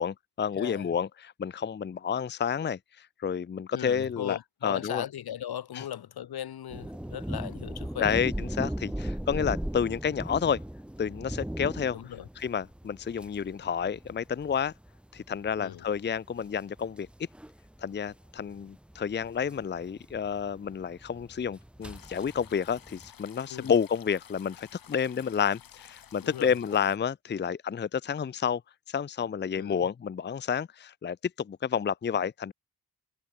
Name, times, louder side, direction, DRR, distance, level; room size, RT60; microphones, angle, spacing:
voice 1, 0.0-4.4 4.6-5.0 5.7-5.8 8.0-10.6 11.0-12.0 12.4-14.7 15.1-17.1 17.8-28.6 28.9-32.5, left 7 dB, 30° left, 0.7 m, -30 dB
voice 2, 0.6-0.9 3.7-8.2 11.9-12.3 15.6-15.8 23.5-23.7 26.2-26.5 29.5-29.8, left 10 dB, 80° left, 3.1 m, -38 dB
sound 1, 6.7-23.1, right 1 dB, 5° right, 1.2 m, -38 dB
sound 2, 21.8-27.0, left 9 dB, 65° left, 4.8 m, -53 dB
wide cardioid pair, 150°, 37 cm